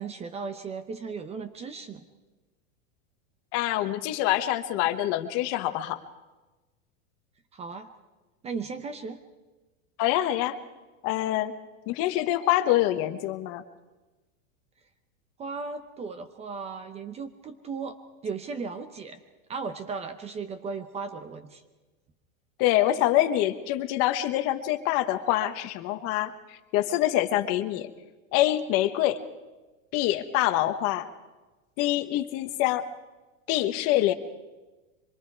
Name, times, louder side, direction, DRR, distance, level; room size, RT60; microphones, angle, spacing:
voice 1, 0.0-2.0 7.5-7.9 8.4-9.2 15.4-18.0 18.2-19.2 19.5-21.6, right 5 dB, 15° right, 10 dB, 0.8 m, -36 dB
voice 2, 3.5-6.0 10.0-10.6 11.0-11.5 11.9-13.6 22.6-26.3 26.7-27.9 28.3-29.2 29.9-31.1 31.8-32.9 33.5-34.1, left 14 dB, 40° left, 10 dB, 1.3 m, -25 dB
25.0 x 22.5 x 4.8 m, 1.2 s
supercardioid pair, 160°, 39 cm